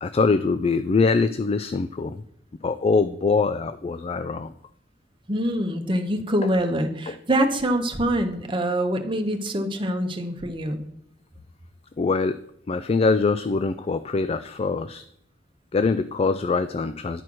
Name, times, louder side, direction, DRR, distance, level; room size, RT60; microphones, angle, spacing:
voice 1, 0.0-2.2 2.6-4.5 7.1-7.2 12.0-12.4 12.7-15.0 15.7-17.2, left 4 dB, 35° left, 12 dB, 0.3 m, -23 dB
voice 2, 5.3-10.8, right 1 dB, 30° right, 5 dB, 1.1 m, -25 dB
11.0 x 4.5 x 6.2 m, 0.75 s
head